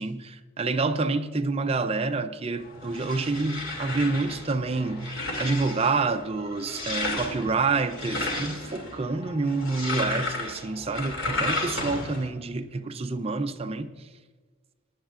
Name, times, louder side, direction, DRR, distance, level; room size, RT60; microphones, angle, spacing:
voice 1, 0.0-14.1, right 3 dB, 30° right, 0.4 m, -28 dB
sound 1, 2.6-12.3, left 2 dB, 65° left, 2.6 m, -33 dB
21.0 x 10.5 x 2.5 m
head